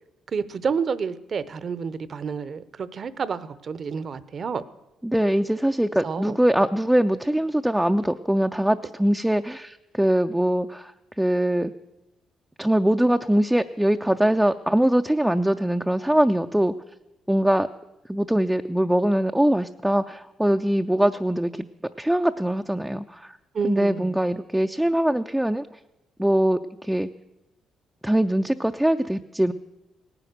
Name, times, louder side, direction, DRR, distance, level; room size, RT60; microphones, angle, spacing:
voice 1, 0.3-4.6 6.0-6.4 23.5-24.2, right 6 dB, 50° right, 16 dB, 0.7 m, -29 dB
voice 2, 5.0-10.9 11.2-11.7 12.6-16.7 17.3-17.7 18.1-21.7 22.0-23.4 23.6-25.7 26.2-27.1 28.0-29.5, right 1 dB, 5° right, 5 dB, 0.4 m, -22 dB
17.5 x 10.0 x 6.6 m, 0.94 s
cardioid pair, 90°, 0 cm